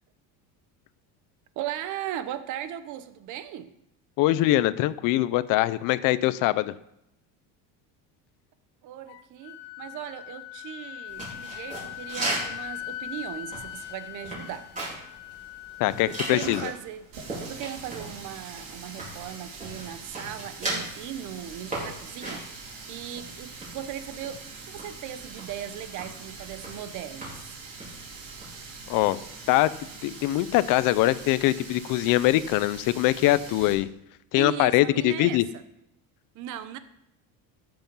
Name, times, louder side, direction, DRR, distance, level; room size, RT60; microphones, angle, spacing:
voice 1, 1.6-3.7 8.8-14.7 16.1-17.1 17.4-27.6 34.3-35.4 36.3-36.8, right 11 dB, 45° right, 0.9 m, -38 dB
voice 2, 4.2-6.7 15.8-16.7 28.9-29.2 29.5-29.7 30.0-33.9 34.3-35.4, left 16 dB, 50° left, 0.6 m, -23 dB
Wind instrument woodwind instrument, 9.1-16.8, left 14 dB, 90° left, 0.7 m, -41 dB
sound 1, 11.1-29.4, right 2 dB, 20° right, 4.6 m, -39 dB
Water tap faucet, 17.1-33.7, right 4 dB, 85° right, 4.0 m, -43 dB
13.5 x 7.0 x 5.4 m
cardioid pair, 165°, 41 cm